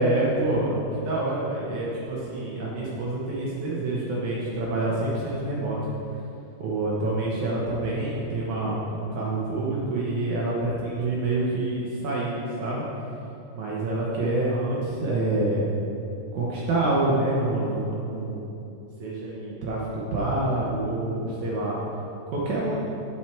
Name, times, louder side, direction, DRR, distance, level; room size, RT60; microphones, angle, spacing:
voice 1, 0.0-5.8 6.6-12.8 13.6-15.7 16.3-18.5 19.0-21.8 22.3-22.8, right 2 dB, 65° right, -5 dB, 2.4 m, -27 dB
9.2 x 7.9 x 4.5 m, 2.8 s
omnidirectional pair, 3.9 m